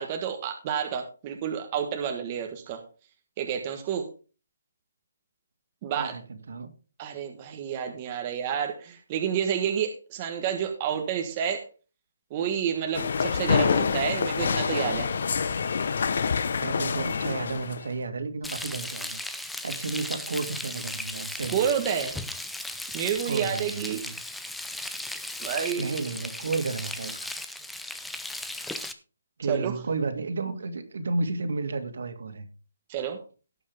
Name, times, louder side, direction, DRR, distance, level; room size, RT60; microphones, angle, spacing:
voice 1, 0.0-2.8 3.4-4.1 5.8-6.2 7.0-11.7 12.3-15.1 21.5-22.1 22.9-24.0 25.4-25.9 29.5-29.7 32.9-33.2, right 8 dB, 25° right, 4 dB, 1.4 m, -29 dB
voice 2, 5.9-6.7 16.6-21.7 23.2-24.2 25.8-27.4 29.4-32.5, right 3 dB, 65° right, 6 dB, 2.6 m, -32 dB
St Pancras station int walking heels atmos, 12.9-17.9, left 6 dB, 50° left, 0.9 m, -26 dB
Frying (food), 18.4-28.9, left 1 dB, ahead, 0.6 m, -36 dB
17.0 x 6.4 x 3.5 m, 0.34 s
hypercardioid pair, 170°, 0 cm